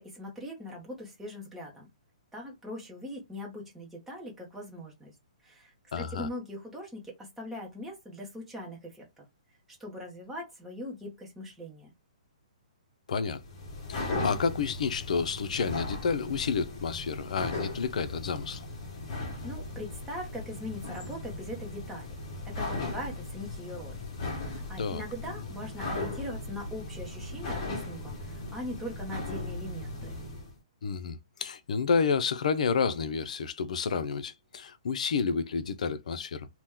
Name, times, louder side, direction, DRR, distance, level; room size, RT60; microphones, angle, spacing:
voice 1, 0.0-1.9 2.3-5.2 5.4-9.2 9.8-11.9 19.2-22.1 22.5-24.0 24.4-30.2, left 1 dB, 5° right, 0.8 m, -41 dB
voice 2, 5.9-6.3 13.1-13.4 13.9-18.7 24.8-25.0 30.8-36.5, left 5 dB, 65° left, 0.5 m, -30 dB
sound 1, 13.3-30.5, left 2 dB, 35° left, 1.2 m, -37 dB
2.9 x 2.2 x 3.6 m
hypercardioid pair, 165°, 4 cm